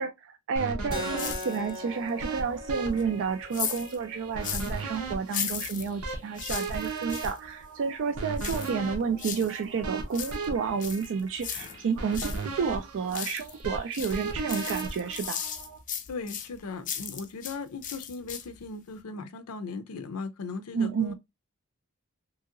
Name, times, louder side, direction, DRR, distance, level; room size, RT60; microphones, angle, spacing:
voice 1, 0.0-15.4 20.7-21.1, right 5 dB, 60° right, 0.3 m, -31 dB
sound 1, 0.6-15.8, right 3 dB, 85° right, 0.8 m, -37 dB
Keyboard (musical), 0.9-6.0, left 1 dB, 20° right, 0.7 m, -41 dB
sound 2, 1.2-1.9 2.3-4.8 5.2-7.4 8.4-9.6 9.9-12.4 12.8-13.6 13.9-17.6 17.8-18.6 19.0-19.1, left 8 dB, 35° left, 0.4 m, -37 dB
voice 2, 16.1-21.1, left 4 dB, 90° left, 0.5 m, -38 dB
2.8 x 2.7 x 2.4 m
head